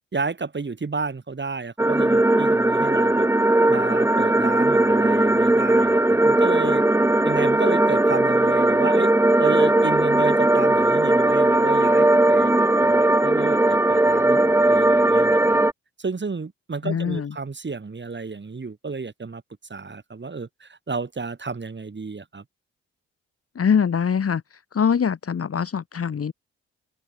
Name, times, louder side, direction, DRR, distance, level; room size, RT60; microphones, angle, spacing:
voice 1, 0.1-3.3 3.7-6.8 7.2-9.1 9.4-15.6 16.0-19.4 19.7-22.4, right 4 dB, 35° right, 6.5 m, -31 dB
sound 1, 1.8-15.7, right 1 dB, 5° right, 0.9 m, -18 dB
voice 2, 16.8-17.3 23.6-24.4 24.7-26.3, left 7 dB, 45° left, 2.1 m, -23 dB
open air
hypercardioid pair, 40°, 33 cm